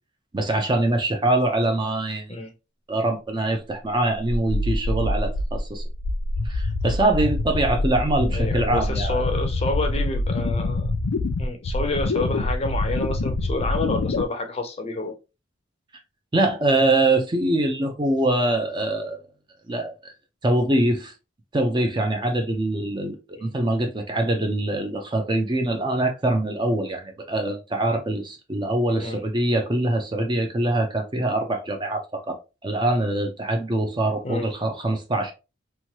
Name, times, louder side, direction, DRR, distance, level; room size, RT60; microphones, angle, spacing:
voice 1, 0.3-2.4 2.9-5.8 6.4-9.2 16.3-19.2 19.7-20.1 20.4-21.1 21.5-35.3, right 1 dB, 25° right, 0.4 m, -24 dB
sound 1, 4.5-14.2, left 2 dB, 90° left, 0.5 m, -25 dB
voice 2, 8.3-10.9 11.4-15.2 23.3-23.5 29.0-29.2 34.2-34.5, left 2 dB, 30° left, 0.5 m, -29 dB
3.0 x 2.2 x 2.8 m
head